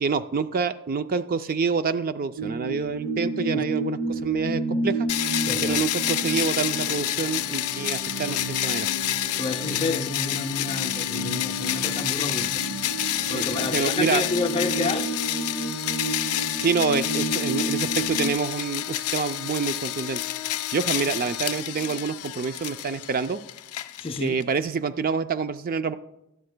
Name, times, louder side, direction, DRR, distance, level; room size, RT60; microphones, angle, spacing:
voice 1, 0.0-5.1 5.6-8.9 13.4-13.5 13.7-14.2 16.6-20.2 20.7-23.4 24.2-26.0, right 5 dB, 40° right, 0.4 m, -27 dB
sound 1, 2.4-18.3, right 2 dB, 60° right, 0.8 m, -32 dB
sound 2, 5.1-24.4, left 13 dB, 85° left, 0.5 m, -29 dB
voice 2, 5.5-5.8 9.4-12.5 13.3-15.1 24.0-24.4, left 3 dB, 25° left, 0.5 m, -29 dB
17.0 x 12.0 x 2.2 m
head